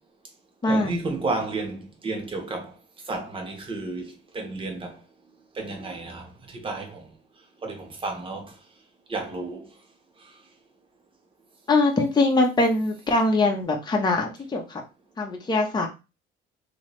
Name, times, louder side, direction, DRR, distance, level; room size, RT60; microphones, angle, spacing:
voice 1, 0.7-2.7 3.1-5.0 5.5-7.1 7.6-8.5 9.1-9.7, right 3 dB, 25° right, 1.1 m, -32 dB
voice 2, 11.7-14.8 15.2-15.9, left 2 dB, 20° left, 0.9 m, -22 dB
3.1 x 3.0 x 3.1 m
cardioid pair, 120°, 20 cm